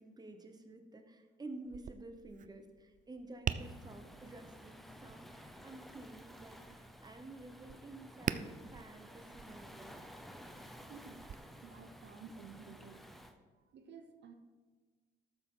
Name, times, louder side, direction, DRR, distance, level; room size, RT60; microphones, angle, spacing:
voice 1, 0.0-10.2, right 2 dB, 20° right, 5 dB, 1.1 m, -51 dB
Tap, 1.7-11.3, right 8 dB, 40° right, 0.4 m, -45 dB
Waves surf, 3.6-13.3, equal, ahead, 0.8 m, -54 dB
voice 2, 10.9-11.3 11.6-13.2 13.6-14.3, right 5 dB, 65° right, 7 dB, 0.8 m, -53 dB
12.5 x 7.0 x 3.9 m, 1.4 s
cardioid pair, 90°, 20 cm